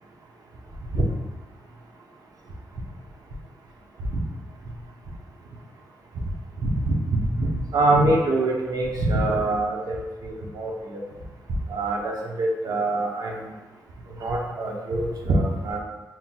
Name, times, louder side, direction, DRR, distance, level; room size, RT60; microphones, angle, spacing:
voice 1, 6.6-11.0 11.7-13.5 14.2-15.8, right 2 dB, 65° right, 0 dB, 0.8 m, -24 dB
5.6 x 2.9 x 2.2 m, 1.2 s
cardioid pair, 85°, 7 cm